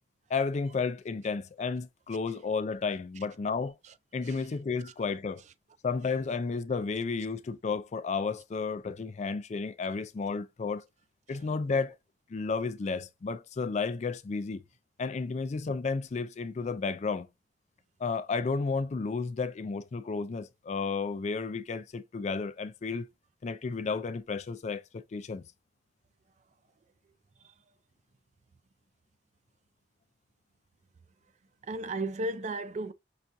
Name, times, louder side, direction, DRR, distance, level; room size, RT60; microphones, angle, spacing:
voice 1, 0.3-3.7 4.1-5.4 5.8-10.8 11.3-11.9 12.3-14.6 15.0-17.3 18.0-23.1 23.4-25.4, left 4 dB, 40° left, 0.4 m, -32 dB
voice 2, 31.6-32.9, right 2 dB, 40° right, 0.4 m, -35 dB
5.7 x 2.4 x 2.6 m
head